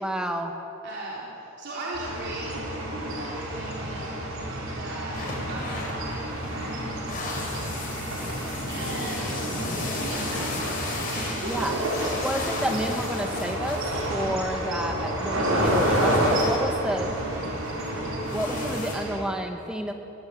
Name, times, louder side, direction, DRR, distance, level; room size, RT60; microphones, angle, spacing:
voice 1, 0.0-0.5 11.4-11.8 12.2-13.8 14.1-17.1 18.3-19.9, equal, 5° right, 4 dB, 1.3 m, -30 dB
voice 2, 0.8-2.7 3.1-4.2 4.8-5.1 5.5-7.0 8.7-9.5 9.9-11.6 18.5-18.6, right 2 dB, 55° right, -6 dB, 3.7 m, -38 dB
sound 1, 1.9-19.2, right 1 dB, 85° right, 5.0 m, -29 dB
sound 2, 5.1-18.9, left 2 dB, 45° left, 5.3 m, -35 dB
20.5 x 18.0 x 8.6 m, 2.8 s
head